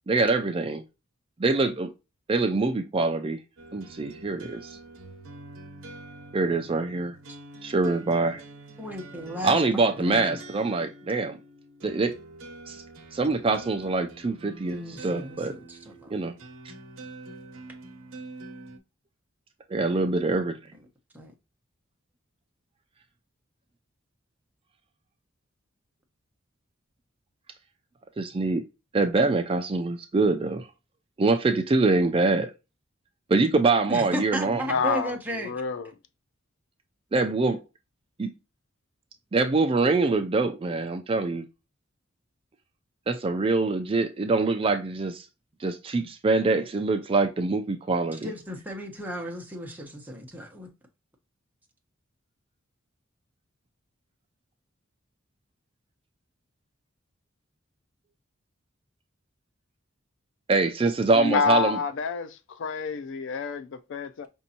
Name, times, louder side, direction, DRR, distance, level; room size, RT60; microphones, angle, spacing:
voice 1, 0.1-0.8 1.4-1.9 2.3-3.4 3.7-4.8 6.3-7.2 7.6-8.4 9.4-11.4 11.8-12.2 12.7-12.8 13.1-15.5 16.1-16.3 19.7-20.6 28.2-28.6 28.9-30.7 31.2-32.5 33.3-34.6 37.1-37.6 38.2-38.3 39.3-41.5 43.1-45.3 45.6-48.3 60.5-61.8, right 3 dB, 25° right, 0.4 m, -24 dB
sound 1, 3.6-18.8, right 2 dB, 80° right, 0.8 m, -46 dB
voice 2, 8.8-10.4 14.7-16.1 21.1-21.3 33.9-35.5 48.1-50.7, equal, 10° right, 0.9 m, -35 dB
voice 3, 34.6-35.9 61.1-64.3, left 5 dB, 65° left, 0.4 m, -28 dB
5.2 x 2.7 x 2.8 m
head